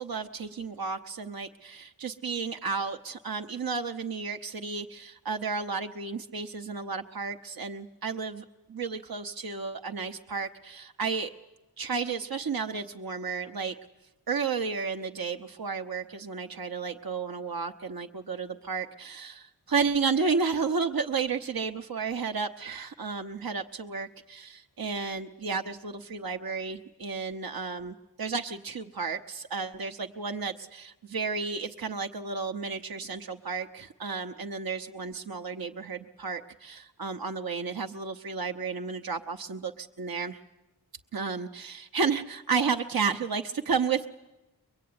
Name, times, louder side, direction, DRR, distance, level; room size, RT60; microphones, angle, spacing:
voice 1, 0.0-8.4 8.7-11.3 11.8-13.8 14.3-40.4 41.1-44.1, right 5 dB, 60° right, 4 dB, 1.0 m, -32 dB
23.0 x 23.0 x 9.6 m, 1.0 s
wide cardioid pair, 55°, 40 cm